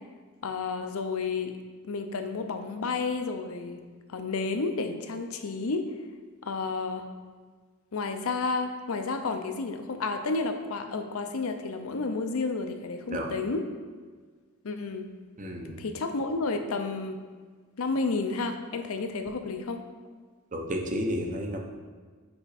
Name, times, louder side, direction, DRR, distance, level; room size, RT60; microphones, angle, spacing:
voice 1, 0.4-1.6 1.8-3.8 4.1-5.9 6.4-7.1 7.9-13.7 14.6-15.1 15.8-17.2 17.8-19.8, left 3 dB, 70° left, 7 dB, 0.6 m, -31 dB
voice 2, 15.4-15.8 20.5-21.6, equal, 35° right, 2 dB, 0.7 m, -31 dB
5.7 x 4.9 x 4.2 m, 1.5 s
head